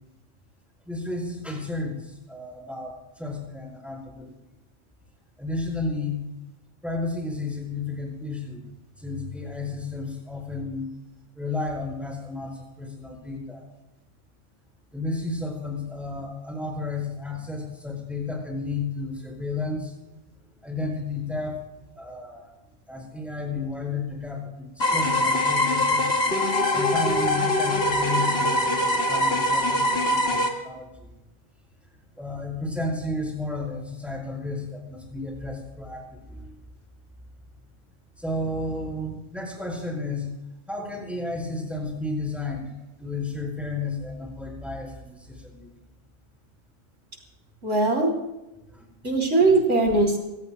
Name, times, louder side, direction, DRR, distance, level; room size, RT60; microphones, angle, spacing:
voice 1, 0.9-4.4 5.4-6.2 6.8-8.7 9.0-10.9 11.4-13.6 14.9-19.9 20.6-21.6 21.9-22.6 22.9-26.1 26.7-31.2 32.2-36.5 38.2-40.3 40.7-42.7 43.0-45.7 48.7-48.9, left 3 dB, ahead, 0 dB, 5.4 m, -32 dB
sound 1, 24.8-30.5, left 1 dB, 55° left, 2.3 m, -23 dB
voice 2, 47.6-48.1 49.0-50.2, right 2 dB, 75° right, 1 dB, 3.8 m, -20 dB
25.5 x 18.0 x 2.3 m, 0.97 s
omnidirectional pair, 1.3 m